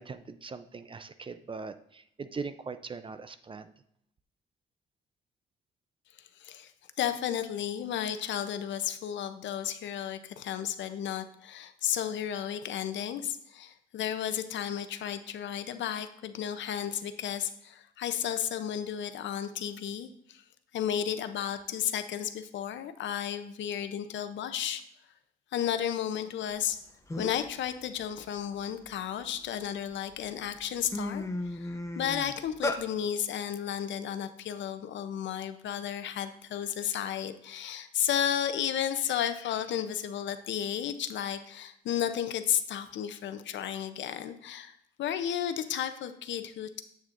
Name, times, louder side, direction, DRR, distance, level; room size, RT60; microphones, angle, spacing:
voice 1, 0.0-3.7, right 4 dB, 25° right, 12 dB, 0.5 m, -41 dB
voice 2, 6.2-6.7 7.0-20.4 20.7-24.8 25.5-26.8 27.2-46.8, left 9 dB, 70° left, 10 dB, 0.6 m, -33 dB
sound 1, 26.7-26.8 27.1-27.5 28.0-29.5 30.1-30.3 30.6-32.8, left 2 dB, 15° left, 0.8 m, -35 dB
8.0 x 7.2 x 2.5 m, 0.73 s
cardioid pair, 90°, 20 cm